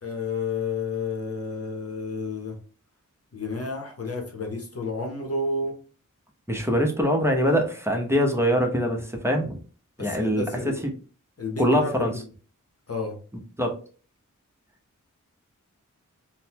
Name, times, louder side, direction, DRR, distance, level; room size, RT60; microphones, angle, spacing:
voice 1, 0.0-2.6 3.3-5.7 10.0-10.8 11.4-12.1 12.9-13.2, left 3 dB, 50° left, 2 dB, 0.9 m, -31 dB
voice 2, 6.5-9.6 10.0-10.7 11.6-12.1 13.6-13.7, equal, 10° right, 2 dB, 0.8 m, -23 dB
3.8 x 2.2 x 2.9 m, 0.39 s
cardioid pair, 45°, 32 cm